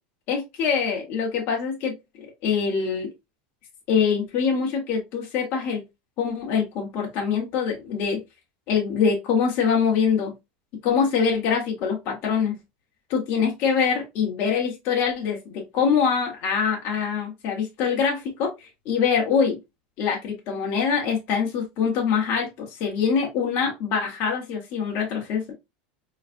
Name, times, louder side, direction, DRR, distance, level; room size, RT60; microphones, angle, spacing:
voice 1, 0.3-3.1 3.9-5.8 6.2-8.2 8.7-10.3 10.8-12.5 13.1-18.5 18.8-19.6 20.0-25.5, left 6 dB, 45° left, 1.4 m, -24 dB
4.1 x 3.2 x 2.5 m
supercardioid pair, 145°, 5 cm